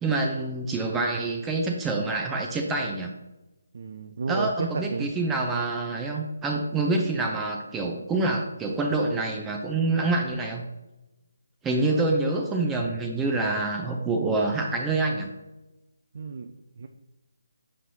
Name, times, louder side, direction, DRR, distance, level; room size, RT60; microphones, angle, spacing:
voice 1, 0.0-3.1 4.3-10.6 11.6-15.3, right 3 dB, 10° right, 1 dB, 0.7 m, -26 dB
voice 2, 3.7-5.1 11.9-12.1 16.1-16.9, right 4 dB, 55° right, 6 dB, 0.5 m, -32 dB
7.4 x 6.0 x 2.8 m, 0.99 s
figure-of-eight pair, 150°, 0 cm